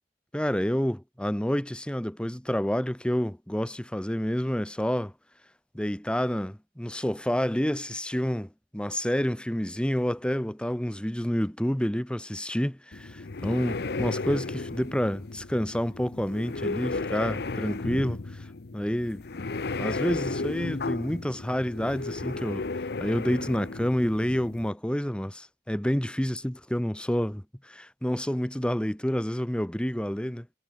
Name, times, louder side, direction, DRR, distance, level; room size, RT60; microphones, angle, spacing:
voice 1, 0.3-5.1 5.7-18.2 18.7-19.2 19.8-22.7 23.0-30.5, equal, 5° left, 0.9 m, -29 dB
sound 1, 12.9-24.7, left 3 dB, 65° left, 0.8 m, -34 dB
head